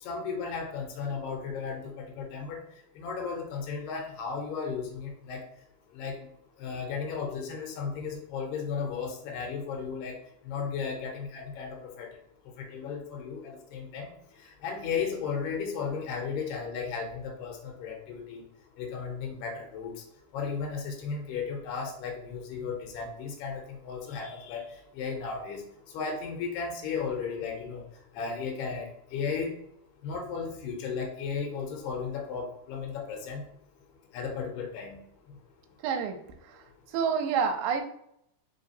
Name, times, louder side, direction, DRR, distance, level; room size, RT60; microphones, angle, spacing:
voice 1, 0.0-2.6 3.0-5.4 5.9-6.3 6.6-10.2 10.5-12.1 12.6-14.1 14.6-18.4 18.8-19.9 20.3-24.6 24.9-25.6 25.9-27.8 28.1-29.5 30.0-33.4 34.1-35.0, left 5 dB, 85° left, 0 dB, 2.4 m, -35 dB
voice 2, 35.8-36.2 36.4-37.8, right 6 dB, 80° right, 5 dB, 1.9 m, -29 dB
4.8 x 3.3 x 2.7 m, 0.75 s
omnidirectional pair, 3.9 m